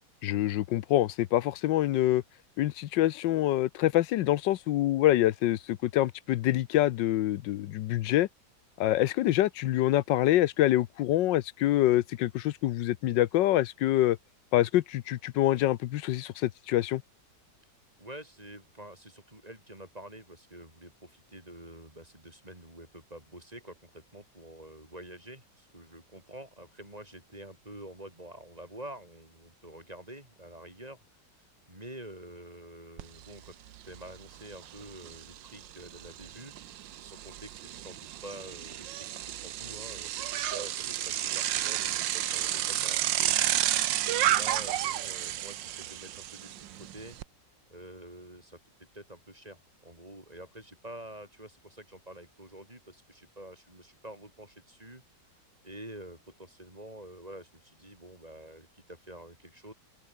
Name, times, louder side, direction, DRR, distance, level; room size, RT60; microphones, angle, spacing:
voice 1, 0.2-2.2 2.6-8.3 8.8-14.2 14.5-17.0, left 14 dB, 85° left, 1.4 m, -26 dB
voice 2, 18.0-31.0 31.7-33.6 33.8-36.5 37.0-39.1 39.4-47.2 47.7-55.0 55.6-59.7, right 1 dB, 20° right, 5.4 m, -47 dB
Bicycle, 33.0-33.1 33.5-47.2, right 12 dB, 85° right, 1.6 m, -32 dB
open air
omnidirectional pair, 1.9 m